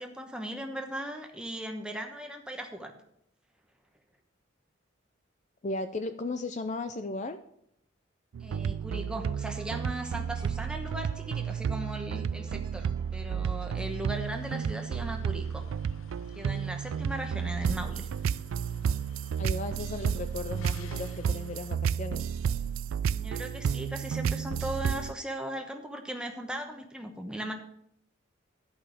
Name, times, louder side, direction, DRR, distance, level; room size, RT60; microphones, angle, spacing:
voice 1, 0.0-2.9 8.4-15.7 16.3-18.1 23.1-27.5, right 1 dB, 5° right, 3 dB, 1.0 m, -38 dB
voice 2, 5.6-7.4 19.4-22.2, left 3 dB, 35° left, 9 dB, 0.4 m, -35 dB
sound 1, 8.3-25.1, right 7 dB, 85° right, 0.3 m, -32 dB
sound 2, 9.4-14.4, right 2 dB, 20° right, 1.6 m, -57 dB
sound 3, 14.1-21.7, left 5 dB, 85° left, 0.7 m, -54 dB
11.5 x 5.5 x 6.5 m, 0.73 s
head